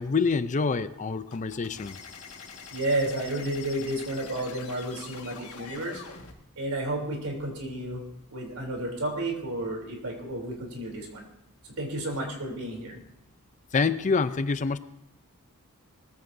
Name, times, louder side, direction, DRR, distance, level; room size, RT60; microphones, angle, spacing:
voice 1, 0.0-2.0 13.7-14.8, left 4 dB, 35° left, 13 dB, 0.5 m, -26 dB
sound 1, 1.3-6.3, left 6 dB, 80° left, 1.7 m, -44 dB
voice 2, 2.7-6.0 6.6-8.0 8.3-11.3 11.8-13.0, right 1 dB, 85° right, 1 dB, 3.3 m, -31 dB
20.5 x 14.5 x 2.7 m, 0.81 s
head